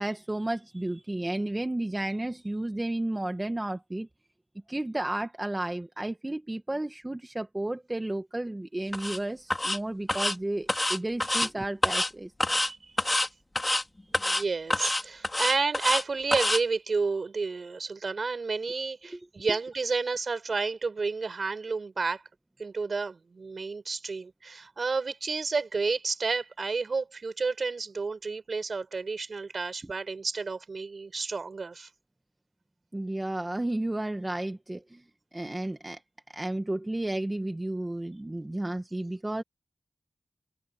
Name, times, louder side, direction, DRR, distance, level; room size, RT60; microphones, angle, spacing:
voice 1, 0.0-4.1 4.7-12.3 19.1-19.2 32.9-35.0 35.3-36.0 36.3-39.4, right 1 dB, 20° right, 1.8 m, -32 dB
sound 1, 8.9-9.2 9.5-9.8 10.1-10.4 10.7-11.5 11.8-12.1 12.4-12.7 13.0-13.3 13.6-13.8 14.1-14.4 14.7-16.0 16.3-16.6, left 1 dB, 25° left, 4.1 m, -27 dB
voice 2, 14.2-22.2 22.6-31.9, right 4 dB, 60° right, 7.6 m, -31 dB
cardioid pair, 60°, 0 cm